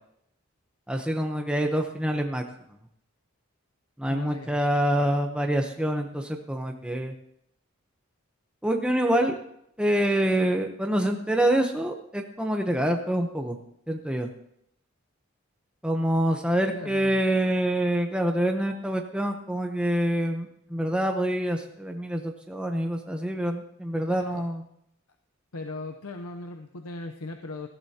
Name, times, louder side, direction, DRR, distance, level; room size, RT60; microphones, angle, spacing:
voice 1, 0.9-2.4 4.0-7.1 8.6-9.4 9.8-13.6 13.9-14.3 15.8-24.6, right 1 dB, 5° right, 3 dB, 0.8 m, -26 dB
voice 2, 4.1-4.6 16.7-17.2 24.1-24.4 25.5-27.7, left 3 dB, 85° left, 5 dB, 0.8 m, -38 dB
18.5 x 14.0 x 2.9 m, 0.76 s
head